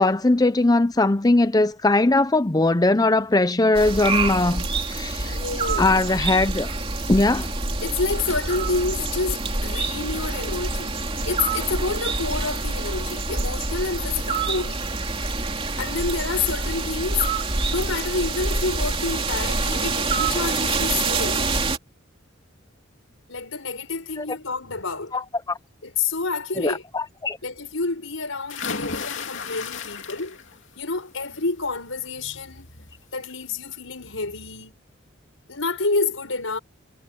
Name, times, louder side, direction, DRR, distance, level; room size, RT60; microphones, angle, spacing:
voice 1, 0.0-5.4 5.8-6.7 7.1-7.5 24.2-24.3 25.1-25.6 26.6-27.4, left 2 dB, 20° left, 0.6 m, -20 dB
sound 1, 3.7-21.8, right 3 dB, 30° right, 2.9 m, -26 dB
voice 2, 5.2-6.0 7.8-10.9 11.2-14.9 15.8-17.3 17.7-21.5 23.3-25.1 25.8-26.8 27.4-30.4 30.8-32.7 33.1-34.8 35.5-36.6, left 4 dB, 90° left, 5.5 m, -28 dB
sound 2, 28.5-30.6 31.0-31.4 32.8-32.9 33.3-33.4, left 5 dB, 70° left, 2.7 m, -33 dB
head